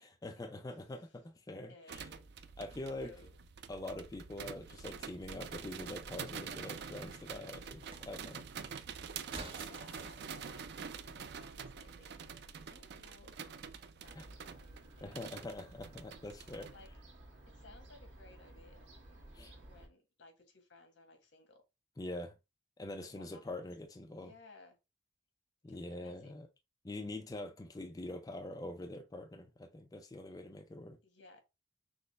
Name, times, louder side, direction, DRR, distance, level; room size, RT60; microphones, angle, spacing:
voice 1, 0.0-2.1 2.6-3.1 3.7-8.5 14.1-14.2 15.0-16.7 19.3-19.5 22.0-22.3 22.8-24.3 25.6-26.5 26.8-31.0, left 1 dB, 20° left, 0.4 m, -44 dB
voice 2, 1.7-2.3 3.0-3.3 9.6-12.3 12.6-13.6 14.0-15.2 16.6-16.9 17.5-18.9 19.6-21.6 23.0-23.6 24.1-24.8 25.7-26.4 31.0-31.4, left 3 dB, 80° left, 1.4 m, -60 dB
sound 1, 1.9-16.9, right 6 dB, 60° right, 0.4 m, -47 dB
sound 2, 5.2-10.2, right 2 dB, 30° right, 0.8 m, -53 dB
Fowl / Gull seagull, 14.0-19.9, right 1 dB, 80° right, 1.3 m, -56 dB
6.2 x 2.1 x 3.2 m
head